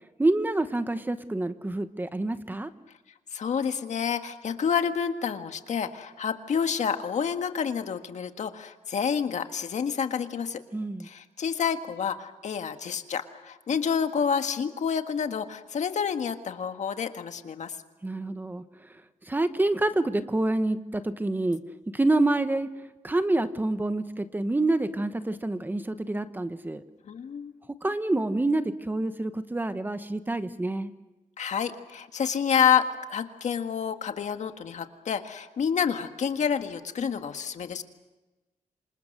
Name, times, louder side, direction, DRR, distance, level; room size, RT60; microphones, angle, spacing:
voice 1, 0.2-2.7 10.7-11.1 18.0-18.6 18.9-21.6 21.9-22.7 23.0-26.8 27.8-30.9, right 2 dB, 15° right, 10 dB, 1.0 m, -27 dB
voice 2, 3.3-10.6 11.0-17.8 27.0-27.5 31.4-37.8, left 7 dB, 60° left, 7 dB, 1.7 m, -28 dB
27.5 x 26.0 x 6.6 m, 1.1 s
wide cardioid pair, 135°, 14 cm